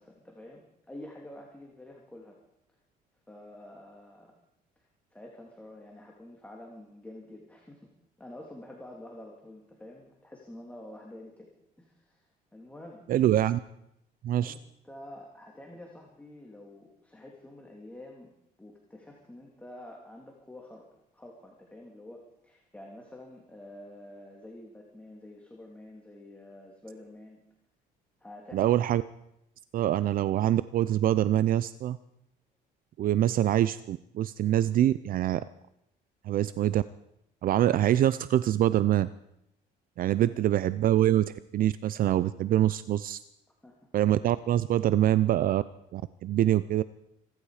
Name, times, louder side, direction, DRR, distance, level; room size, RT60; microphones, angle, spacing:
voice 1, 0.0-2.4 3.3-4.3 5.1-7.9 8.2-11.5 11.8-13.0 14.4-14.6 14.8-18.3 18.6-27.4 28.2-28.8 40.1-40.4 43.6-43.9, left 1 dB, 10° left, -1 dB, 2.8 m, -48 dB
voice 2, 13.1-13.6 14.2-14.5 28.5-29.0 29.7-32.0 33.0-35.4 36.3-36.8 37.4-39.1 40.0-43.2 43.9-45.6 45.9-46.8, right 12 dB, 55° right, 15 dB, 0.5 m, -25 dB
25.0 x 11.5 x 5.0 m, 0.81 s
cardioid pair, 110°, 17 cm